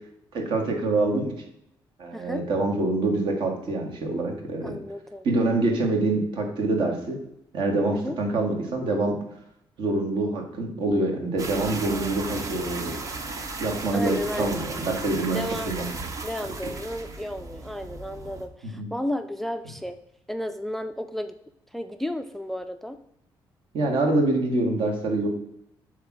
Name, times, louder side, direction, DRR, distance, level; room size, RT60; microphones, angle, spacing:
voice 1, 0.3-1.3 2.0-4.8 5.2-7.2 7.5-9.2 9.8-12.9 13.6-15.9 18.6-18.9 23.7-25.3, right 2 dB, 65° right, 2 dB, 1.7 m, -25 dB
voice 2, 2.1-2.5 4.6-5.3 7.9-8.2 11.9-12.1 13.9-14.6 15.3-15.8 16.2-20.0 20.3-21.3 21.7-23.0, left 1 dB, 5° left, 10 dB, 0.3 m, -33 dB
sound 1, 11.4-18.5, right 3 dB, 35° right, 0.8 m, -35 dB
8.2 x 3.3 x 6.0 m, 0.77 s
cardioid pair, 145°, 9 cm